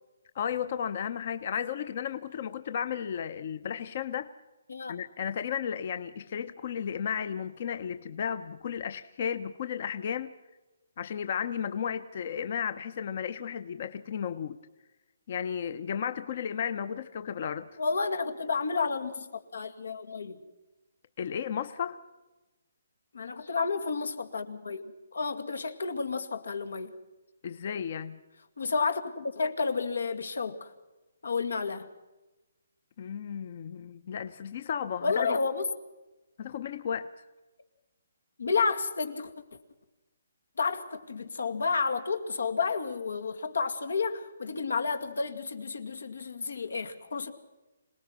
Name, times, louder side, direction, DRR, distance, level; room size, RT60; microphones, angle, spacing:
voice 1, 0.3-4.3 4.9-10.3 11.0-14.6 15.3-17.7 21.2-22.0 27.4-28.2 33.0-35.4 36.4-37.1, left 8 dB, 40° left, 0.7 m, -34 dB
voice 2, 17.8-20.4 23.1-26.9 28.6-30.7 31.2-31.9 35.0-35.7 38.4-39.3 40.6-47.3, left 4 dB, 90° left, 2.2 m, -31 dB
26.0 x 19.0 x 6.0 m
hypercardioid pair, 170°, 0 cm